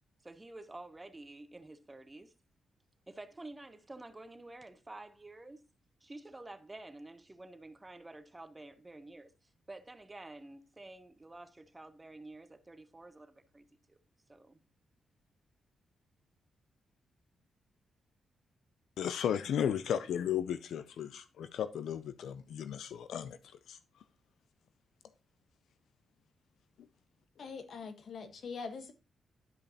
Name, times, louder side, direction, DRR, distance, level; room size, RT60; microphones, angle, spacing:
voice 1, 0.2-2.3 3.1-5.6 6.0-14.0 14.3-14.6, right 2 dB, 20° right, 0.8 m, -50 dB
voice 2, 19.0-23.8, left 9 dB, 80° left, 0.4 m, -35 dB
voice 3, 27.4-28.9, left 5 dB, 65° left, 1.2 m, -43 dB
12.0 x 5.2 x 2.8 m
cardioid pair, 80°, 0 cm